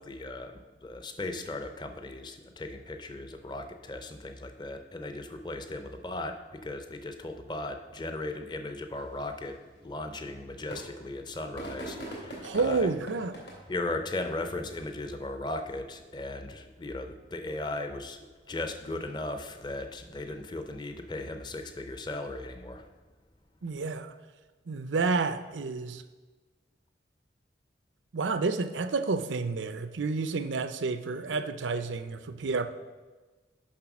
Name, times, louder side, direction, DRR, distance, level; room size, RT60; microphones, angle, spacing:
voice 1, 0.0-12.9 13.7-22.9, left 2 dB, 25° left, 7 dB, 0.6 m, -37 dB
sound 1, 8.9-15.1, right 1 dB, 70° left, 2.6 m, -46 dB
voice 2, 12.4-13.3 23.6-24.1 24.7-26.0 28.1-32.7, right 4 dB, 85° right, 11 dB, 0.6 m, -30 dB
7.3 x 5.5 x 6.0 m, 1.3 s
head